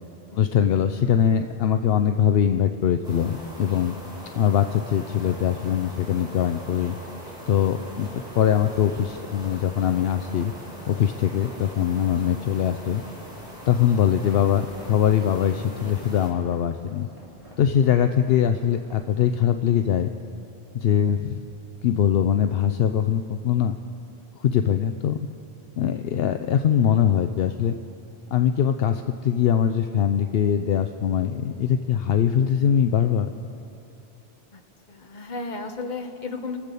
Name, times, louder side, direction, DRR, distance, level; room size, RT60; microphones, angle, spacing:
voice 1, 0.3-4.0 4.4-7.0 7.5-10.5 10.9-13.0 13.7-17.1 17.6-20.1 20.7-21.4 21.8-23.8 24.4-25.2 25.8-27.7 28.3-33.3, left 9 dB, 75° left, 8 dB, 0.8 m, -22 dB
sound 1, 3.0-16.3, equal, 5° right, 4.5 m, -41 dB
sound 2, 14.1-19.5, equal, 30° right, 3.2 m, -48 dB
voice 2, 34.9-36.6, left 3 dB, 45° left, 5 dB, 1.3 m, -34 dB
24.5 x 8.2 x 6.9 m, 2.6 s
omnidirectional pair, 1.0 m